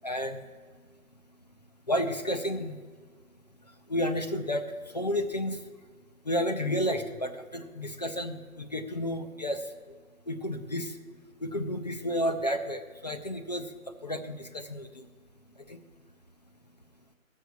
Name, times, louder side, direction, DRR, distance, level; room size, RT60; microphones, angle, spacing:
voice 1, 0.0-0.5 1.9-2.8 3.6-5.7 6.2-10.0 10.3-11.0 11.4-13.7 14.0-15.1 15.6-15.8, equal, 30° left, 7 dB, 0.5 m, -32 dB
14.5 x 6.4 x 6.9 m, 1.5 s
figure-of-eight pair, 150°, 42 cm